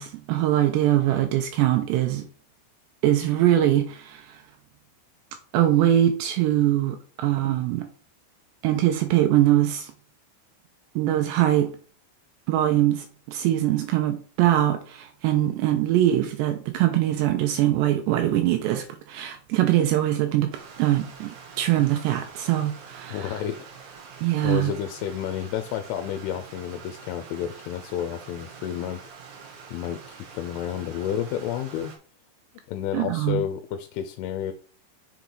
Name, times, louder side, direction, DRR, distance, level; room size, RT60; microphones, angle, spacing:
voice 1, 0.0-2.3 3.0-4.4 5.5-7.9 8.6-9.9 11.0-11.7 12.5-20.5 20.8-23.4 24.2-24.7 32.9-33.4, right 13 dB, 85° right, 2.5 m, -22 dB
Stream, 20.5-32.0, right 6 dB, 65° right, 3.2 m, -45 dB
voice 2, 23.1-23.7 24.4-29.0 29.7-31.9 32.7-34.5, left 10 dB, 85° left, 3.1 m, -31 dB
7.0 x 3.9 x 4.6 m
omnidirectional pair, 5.5 m